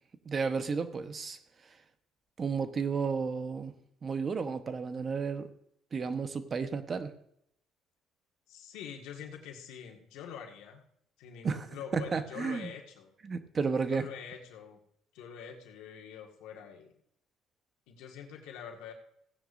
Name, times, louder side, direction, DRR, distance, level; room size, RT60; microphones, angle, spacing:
voice 1, 0.2-1.4 1.6-1.7 2.4-3.7 4.0-5.5 5.9-7.1 11.4-11.7 11.9-12.7 13.2-14.1, right 5 dB, 40° right, 9 dB, 1.1 m, -32 dB
voice 2, 8.5-10.8 11.2-13.1 13.9-14.8 15.1-17.0 17.9-18.9, left 8 dB, 90° left, 1 dB, 1.8 m, -45 dB
16.0 x 9.8 x 2.6 m, 0.71 s
cardioid pair, 95°, 0 cm